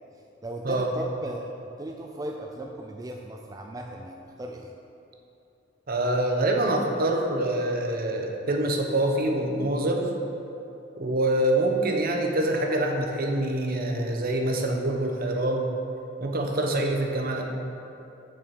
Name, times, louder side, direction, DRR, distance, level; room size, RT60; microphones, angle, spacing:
voice 1, 0.4-1.5 1.8-4.7, right 1 dB, 20° right, 1 dB, 0.4 m, -37 dB
voice 2, 5.9-10.1 11.0-15.7 16.2-17.4, right 1 dB, 50° right, 2 dB, 0.9 m, -25 dB
6.5 x 6.4 x 6.0 m, 2.8 s
head